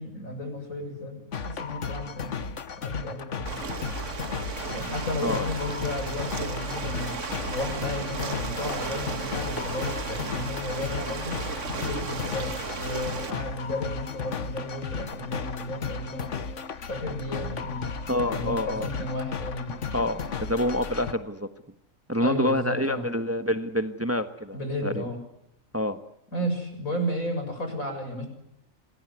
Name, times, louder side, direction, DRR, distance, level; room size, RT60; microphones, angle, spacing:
voice 1, 0.0-3.7 4.6-7.2 7.5-11.4 11.7-16.3 16.9-17.9 18.3-19.7 22.2-23.0 24.5-25.2 26.3-28.3, left 1 dB, 80° left, 5 dB, 7.5 m, -33 dB
sound 1, 1.3-21.1, left 5 dB, 65° left, 1.5 m, -35 dB
Ocean, 3.5-13.3, right 4 dB, 60° right, 2.1 m, -34 dB
voice 2, 18.1-18.9 19.9-21.5 22.1-25.0 25.7-26.0, left 1 dB, 10° right, 8 dB, 1.2 m, -27 dB
27.0 x 20.5 x 9.6 m, 0.79 s
omnidirectional pair, 1.4 m